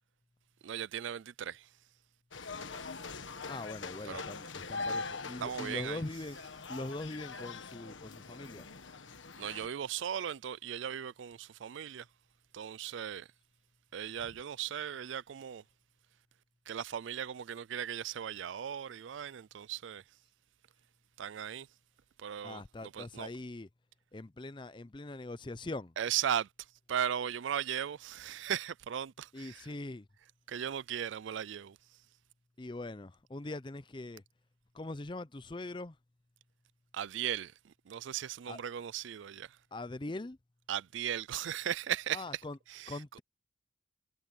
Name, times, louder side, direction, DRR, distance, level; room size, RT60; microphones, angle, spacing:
voice 1, 0.6-1.6 4.1-4.2 5.4-6.0 9.4-12.0 12.5-13.3 13.9-15.6 16.7-20.0 21.2-21.7 22.2-23.3 26.0-26.5 26.9-29.7 30.5-31.7 36.9-37.5 37.9-39.5 40.7-42.4 42.7-43.0, right 9 dB, 75° right, 0.4 m, -37 dB
sound 1, 2.3-9.7, left 4 dB, 80° left, 1.5 m, -42 dB
voice 2, 3.5-6.4 6.7-8.7 22.4-23.7 24.1-25.9 29.3-30.0 32.6-34.2 34.8-35.9 38.5-38.6 39.7-40.4 42.1-42.6 42.9-43.2, left 2 dB, 25° left, 0.5 m, -42 dB
head